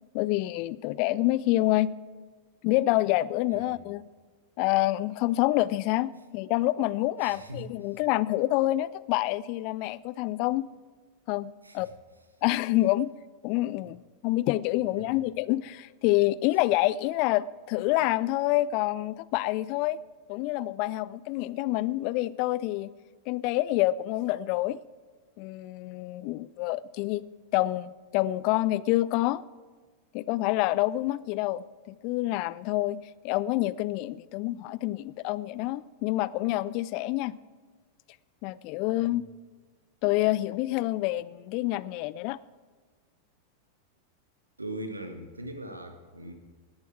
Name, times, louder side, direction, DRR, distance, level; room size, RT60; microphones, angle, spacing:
voice 1, 0.1-1.9 2.6-4.0 4.6-10.7 11.3-11.9 12.4-13.1 13.4-20.0 20.3-22.9 23.3-24.8 25.4-27.2 27.5-29.4 30.1-37.4 38.4-39.2 40.0-42.4, left 17 dB, 45° left, 20 dB, 0.4 m, -27 dB
voice 2, 7.2-7.7 11.6-11.9 15.0-15.1 38.9-39.2 44.6-46.3, right 1 dB, 80° right, 6 dB, 1.6 m, -40 dB
18.5 x 10.5 x 4.5 m, 1.5 s
figure-of-eight pair, 90°, 0 cm